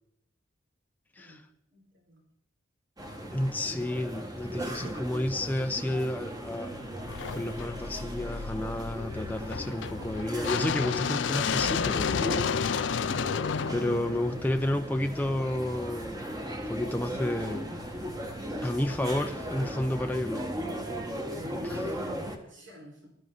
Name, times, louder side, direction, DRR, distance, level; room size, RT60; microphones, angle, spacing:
voice 1, 1.7-2.2 21.3-23.2, equal, 75° right, 4.9 m, -52 dB
sound 1, 3.0-22.4, equal, 20° right, 1.6 m, -37 dB
voice 2, 3.3-6.9 7.3-12.3 13.7-17.7 18.6-20.5 21.6-21.8, left 1 dB, 10° left, 0.5 m, -31 dB
sound 2, 7.0-15.1, left 6 dB, 70° left, 0.5 m, -31 dB
20.0 x 12.5 x 3.9 m
head